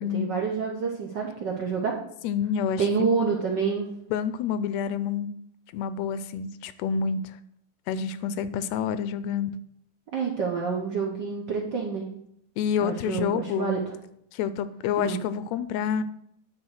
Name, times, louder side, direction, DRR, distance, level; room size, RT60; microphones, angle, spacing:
voice 1, 0.1-1.9 2.8-3.9 10.1-12.1 12.8-13.8 15.0-15.2, right 5 dB, 80° right, -1 dB, 0.9 m, -27 dB
voice 2, 2.2-3.1 4.1-5.3 5.7-7.4 7.9-9.5 12.6-13.8 14.3-16.0, left 7 dB, 80° left, 13 dB, 1.6 m, -28 dB
10.5 x 4.0 x 6.3 m, 0.72 s
omnidirectional pair, 3.4 m